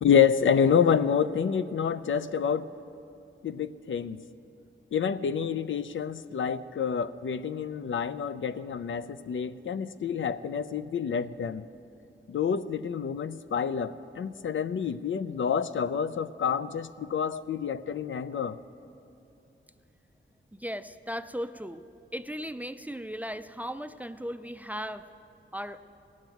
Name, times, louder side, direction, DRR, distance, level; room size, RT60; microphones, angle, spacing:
voice 1, 0.0-2.7 3.4-4.2 4.9-11.7 12.3-18.6, left 7 dB, 80° left, 13 dB, 0.4 m, -28 dB
voice 2, 20.5-21.8 22.1-25.1 25.5-25.8, equal, 10° right, 11 dB, 0.3 m, -37 dB
17.0 x 7.4 x 9.1 m, 2.7 s
wide cardioid pair, 125°, 20 cm